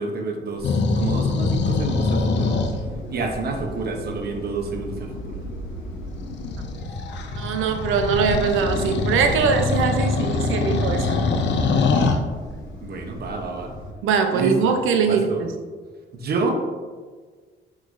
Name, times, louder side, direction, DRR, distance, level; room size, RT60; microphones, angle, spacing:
voice 1, 0.0-2.6 3.1-5.4 12.8-13.7 14.3-14.8 15.0-15.4 16.1-16.6, right 3 dB, 55° right, 2 dB, 0.8 m, -28 dB
sound 1, 0.6-13.9, left 1 dB, 85° left, 1.0 m, -35 dB
sound 2, 0.6-2.8 6.1-12.2, left 4 dB, 65° left, 0.5 m, -23 dB
voice 2, 7.4-11.2 14.0-15.5, right 6 dB, 85° right, 6 dB, 0.5 m, -22 dB
5.9 x 3.1 x 2.5 m, 1.5 s
cardioid pair, 90°, 20 cm